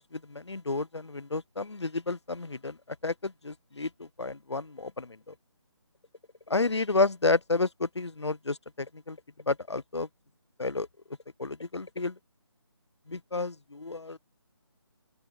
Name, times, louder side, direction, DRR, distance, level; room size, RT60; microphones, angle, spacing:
voice 1, 0.0-2.8 3.0-5.3 6.5-9.2 9.5-10.1 10.6-10.9 11.4-12.2 13.1-14.2, left 3 dB, 75° left, 0.9 m, -31 dB
open air
figure-of-eight pair, 150°, 15 cm